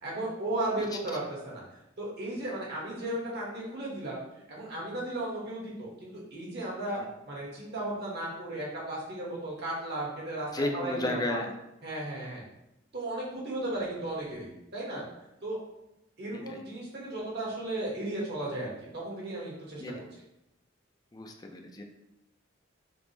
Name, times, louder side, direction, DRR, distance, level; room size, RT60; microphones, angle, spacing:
voice 1, 0.0-1.6 2.0-4.2 4.5-11.4 11.8-12.4 12.9-15.0 15.4-15.6 16.2-20.0, right 1 dB, 55° right, -4 dB, 1.3 m, -35 dB
voice 2, 10.5-11.5 16.5-16.6 19.8-20.0 21.1-21.8, left 1 dB, 20° left, 3 dB, 0.4 m, -33 dB
5.0 x 2.1 x 3.2 m, 0.86 s
head